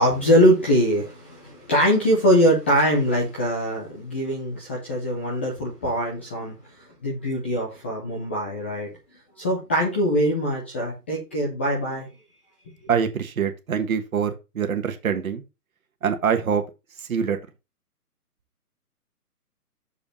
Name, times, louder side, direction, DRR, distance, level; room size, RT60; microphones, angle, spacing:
voice 1, 0.0-6.5 7.0-8.9 9.4-12.1, equal, 10° left, -3 dB, 0.5 m, -22 dB
voice 2, 12.9-15.4 16.0-16.6 17.1-17.4, right 7 dB, 60° right, 7 dB, 1.5 m, -24 dB
6.8 x 5.1 x 5.5 m, 0.27 s
hypercardioid pair, 145°, 46 cm